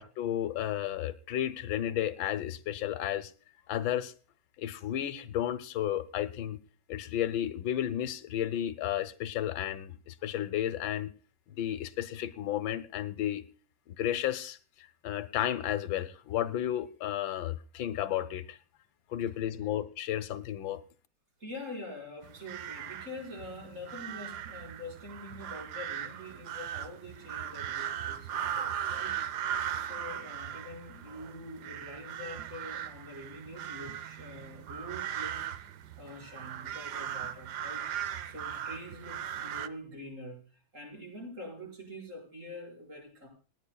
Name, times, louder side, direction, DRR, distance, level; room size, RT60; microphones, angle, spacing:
voice 1, 0.0-3.3 3.7-4.1 4.6-6.6 6.9-11.1 11.5-13.4 13.9-18.6 19.1-20.8, left 11 dB, 80° left, 13 dB, 1.5 m, -33 dB
voice 2, 21.4-29.4 29.7-35.7 36.0-37.9 38.2-43.3, left 1 dB, 40° right, 0 dB, 5.4 m, -45 dB
sound 1, 22.2-39.7, right 9 dB, 65° right, 1.2 m, -38 dB
29.0 x 10.0 x 2.3 m, 0.38 s
omnidirectional pair, 2.0 m